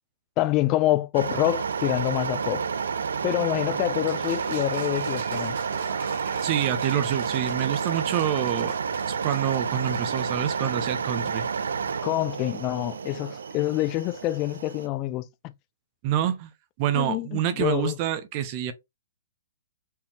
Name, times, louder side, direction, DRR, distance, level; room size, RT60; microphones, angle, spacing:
voice 1, 0.4-2.7 3.2-5.6 12.0-15.3 16.9-18.0, left 16 dB, 30° left, 0.5 m, -26 dB
sound 1, 1.1-14.9, right 6 dB, 80° right, 0.5 m, -30 dB
sound 2, 4.1-10.3, right 6 dB, 60° right, 1.4 m, -41 dB
voice 2, 6.4-8.8 9.1-11.4 16.0-16.5 16.8-18.7, right 10 dB, 35° right, 0.7 m, -27 dB
4.5 x 3.4 x 2.9 m
hypercardioid pair, 140°, 0 cm